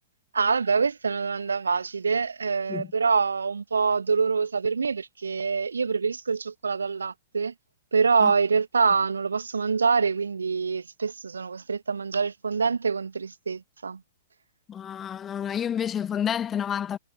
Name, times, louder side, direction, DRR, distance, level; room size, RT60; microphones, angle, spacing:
voice 1, 0.3-7.5 7.9-14.0, right 5 dB, 70° right, 1.7 m, -25 dB
voice 2, 14.7-17.0, left 9 dB, 20° left, 1.2 m, -29 dB
figure-of-eight pair, 110°, 0 cm